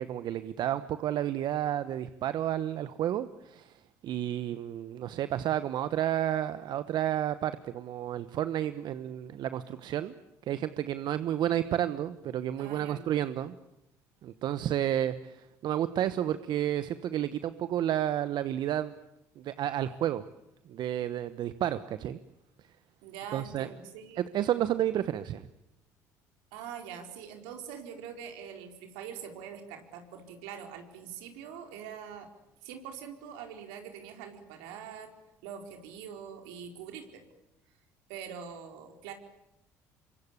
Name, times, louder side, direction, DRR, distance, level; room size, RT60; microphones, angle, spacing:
voice 1, 0.0-10.1 10.4-13.6 14.2-18.9 19.4-20.2 20.7-22.2 23.3-23.7 24.2-25.5, right 11 dB, 60° right, 13 dB, 1.1 m, -31 dB
voice 2, 12.6-13.1 23.0-24.2 26.5-32.3 32.6-35.1 35.4-37.2 38.1-39.1, right 8 dB, 80° right, 5 dB, 4.4 m, -44 dB
27.0 x 24.0 x 8.7 m, 0.88 s
hypercardioid pair, 65°, 8 cm